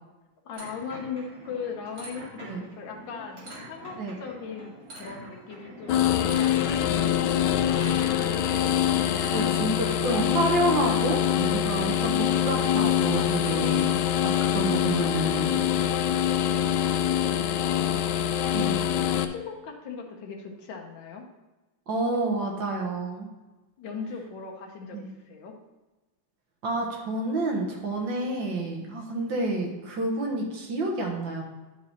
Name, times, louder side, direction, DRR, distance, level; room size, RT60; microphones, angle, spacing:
voice 1, 0.4-6.0 6.4-8.7 17.0-18.1 19.1-21.2 23.8-25.5, left 5 dB, 65° left, 1 dB, 1.7 m, -39 dB
sound 1, 0.5-10.0, equal, 45° right, 3.0 m, -44 dB
sound 2, 5.9-19.3, left 10 dB, 85° left, 1.4 m, -24 dB
voice 2, 9.3-14.0 14.2-15.6 18.5-18.8 21.9-23.3 24.9-25.1 26.6-31.4, right 2 dB, 65° right, 0 dB, 2.0 m, -29 dB
10.5 x 4.7 x 4.2 m, 1.1 s
omnidirectional pair, 2.2 m